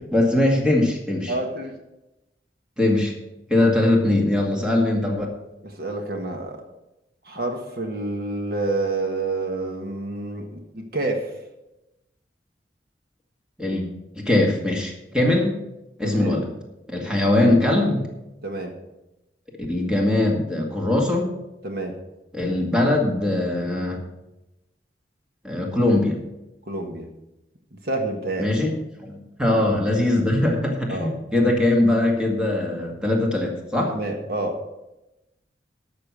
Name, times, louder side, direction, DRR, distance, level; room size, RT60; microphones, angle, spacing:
voice 1, 0.0-1.3 2.8-3.2 3.5-5.3 13.6-13.8 14.1-15.5 16.0-16.5 16.9-18.0 19.7-21.3 22.3-24.0 25.4-26.2 28.4-34.0, left 1 dB, 5° right, 0 dB, 2.1 m, -21 dB
voice 2, 1.3-1.7 5.6-6.6 7.2-11.3 16.0-16.4 18.4-18.7 21.6-22.0 26.7-27.1 27.8-28.5 29.5-29.6 30.9-31.1 33.9-34.6, right 2 dB, 60° right, 3 dB, 1.5 m, -28 dB
12.0 x 6.8 x 6.3 m, 0.95 s
head